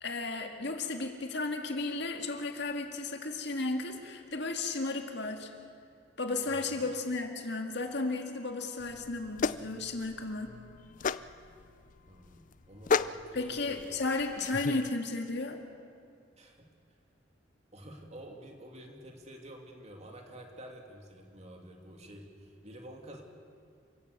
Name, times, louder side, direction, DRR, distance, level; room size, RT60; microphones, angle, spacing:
voice 1, 0.0-5.5 6.2-10.6 13.3-15.6, left 3 dB, 65° left, 4 dB, 2.1 m, -34 dB
voice 2, 6.4-6.9 12.1-14.0 16.4-16.7 17.7-23.2, right 1 dB, 35° right, 2 dB, 2.7 m, -49 dB
sound 1, 8.8-14.9, left 5 dB, 45° left, 0.5 m, -35 dB
28.5 x 16.5 x 6.8 m, 2.2 s
head